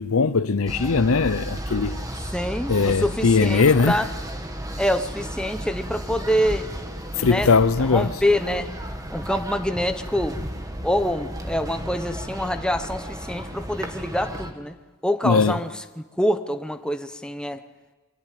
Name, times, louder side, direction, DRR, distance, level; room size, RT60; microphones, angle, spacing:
voice 1, 0.0-2.1 2.7-3.9 7.2-8.1 15.2-15.6, left 4 dB, 80° left, 0.7 m, -20 dB
sound 1, 0.7-14.5, right 1 dB, 15° right, 1.9 m, -33 dB
voice 2, 2.3-4.0 4.8-6.7 7.2-7.5 7.8-8.7 9.1-10.4 10.8-14.7 15.0-17.6, equal, 5° left, 0.9 m, -25 dB
23.5 x 17.5 x 9.3 m
head